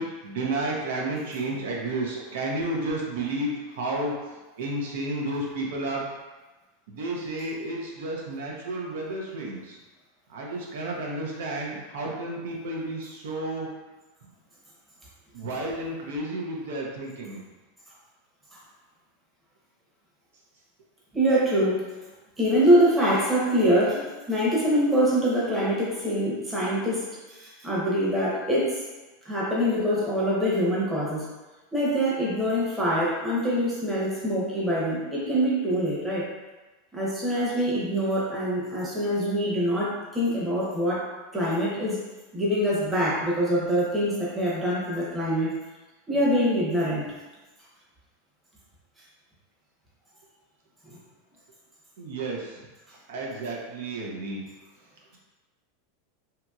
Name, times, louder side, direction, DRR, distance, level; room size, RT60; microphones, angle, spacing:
voice 1, 0.0-4.1 4.6-6.1 6.9-9.8 10.3-13.7 15.3-17.4 52.0-52.5 53.1-54.4, right 2 dB, 80° right, -2 dB, 0.6 m, -31 dB
voice 2, 21.1-21.9 22.4-28.8 29.2-31.3 31.7-36.3 36.9-42.0 42.3-45.5 46.1-47.1, equal, 10° right, -7 dB, 0.8 m, -24 dB
2.8 x 2.7 x 2.3 m, 1.2 s
supercardioid pair, 140°, 0 cm